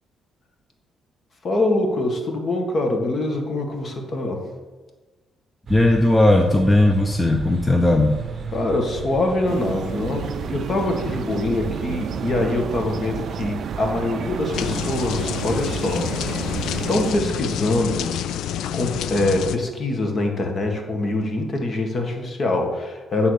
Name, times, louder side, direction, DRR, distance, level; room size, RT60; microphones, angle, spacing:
voice 1, 1.4-4.4 8.5-16.5 16.9-18.2 18.7-23.3, left 2 dB, 45° left, 3 dB, 1.6 m, -24 dB
voice 2, 5.7-8.1, left 1 dB, 15° left, 4 dB, 0.7 m, -17 dB
sound 1, 5.7-17.5, right 4 dB, 40° right, 0.7 m, -36 dB
sound 2, 9.5-17.1, right 8 dB, 65° right, 0.4 m, -31 dB
sound 3, 14.5-19.6, left 10 dB, 80° left, 0.3 m, -28 dB
9.0 x 3.8 x 6.6 m, 1.2 s
cardioid pair, 90°, 0 cm